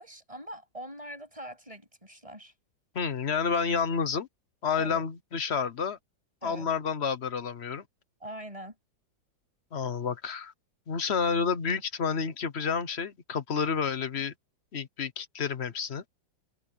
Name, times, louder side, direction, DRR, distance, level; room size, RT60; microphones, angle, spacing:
voice 1, 0.0-2.5 4.8-5.0 6.4-6.7 8.2-8.7, right 1 dB, 15° right, 8.2 m, -43 dB
voice 2, 2.9-4.3 4.6-6.0 6.4-7.8 9.7-10.5 10.9-14.3 14.7-16.0, left 6 dB, 40° left, 1.0 m, -30 dB
omnidirectional pair, 2.1 m